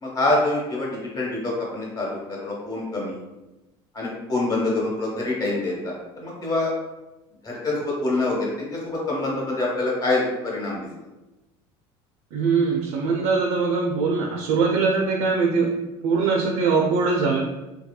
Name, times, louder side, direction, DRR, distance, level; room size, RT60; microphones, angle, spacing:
voice 1, 0.0-3.2 3.9-6.7 7.4-8.8 9.1-10.9, left 2 dB, 35° left, -4 dB, 1.0 m, -25 dB
voice 2, 12.3-15.7 16.0-17.5, right 4 dB, 70° right, 0 dB, 0.4 m, -22 dB
2.7 x 2.2 x 2.2 m, 1.0 s
cardioid pair, 120°, 12 cm